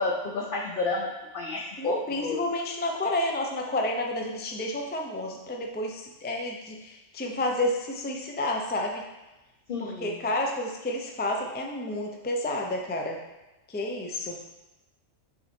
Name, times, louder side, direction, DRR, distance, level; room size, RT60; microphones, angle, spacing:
voice 1, 0.0-2.4 9.7-10.2, left 3 dB, 50° left, 0 dB, 0.7 m, -30 dB
voice 2, 1.8-9.0 9.8-13.2 13.7-14.4, left 1 dB, 15° left, 2 dB, 0.3 m, -30 dB
6.7 x 4.1 x 4.4 m, 1.0 s
omnidirectional pair, 1.3 m